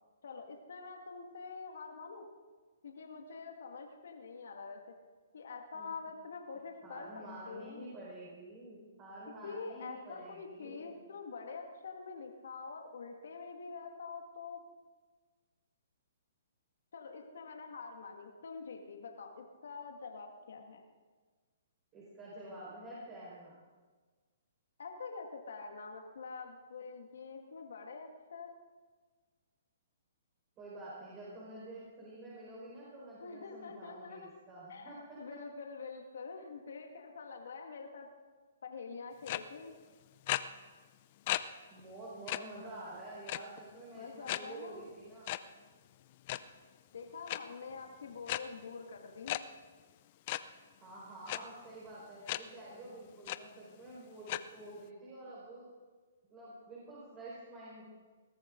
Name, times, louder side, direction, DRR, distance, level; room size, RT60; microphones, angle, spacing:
voice 1, 0.2-2.3 2.8-5.0 5.3-7.8 9.4-14.6 16.9-20.8 24.8-28.5 33.2-34.3 34.7-38.1 38.6-39.8 43.9-44.9 46.9-49.4, left 4 dB, 75° left, 3 dB, 1.9 m, -46 dB
voice 2, 6.8-11.0 21.9-23.6 30.6-35.2 41.7-45.3 47.7-47.8 50.8-55.7 56.3-57.9, right 1 dB, 25° right, -6 dB, 4.8 m, -48 dB
sound 1, 39.3-39.4 40.3-40.4 41.3-41.4 41.8-41.9 42.3-42.4 43.3-43.6 44.3-44.4 45.3-45.4 46.1-46.4 47.3-47.4 48.3-48.4 49.3-49.4 50.3-50.4 51.3-51.4 52.3-52.4 52.8-52.9 53.3-53.4 54.3-54.4, left 16 dB, 40° left, 0.6 m, -34 dB
21.0 x 13.5 x 3.9 m, 1.4 s
hypercardioid pair, 145°, 0 cm